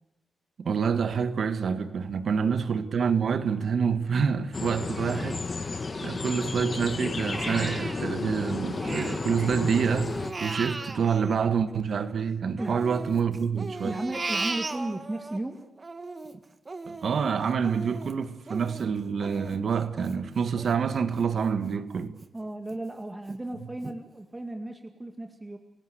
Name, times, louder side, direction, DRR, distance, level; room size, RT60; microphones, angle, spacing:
voice 1, 0.6-5.5 6.0-14.0 16.9-22.2, right 6 dB, 65° right, 1.7 m, -27 dB
sound 1, 4.5-10.3, left 4 dB, 45° left, 1.6 m, -32 dB
Crying sobbing, 4.9-6.6 7.0-9.4 9.7-12.1 12.6-15.4 15.8-21.3 21.7-21.8 22.2-22.8 23.3-23.4 23.8-24.0, right 3 dB, 40° right, 1.8 m, -38 dB
voice 2, 13.8-15.6 22.3-25.6, right 1 dB, 20° right, 2.2 m, -35 dB
29.0 x 17.0 x 8.1 m
cardioid pair, 60°, 0 cm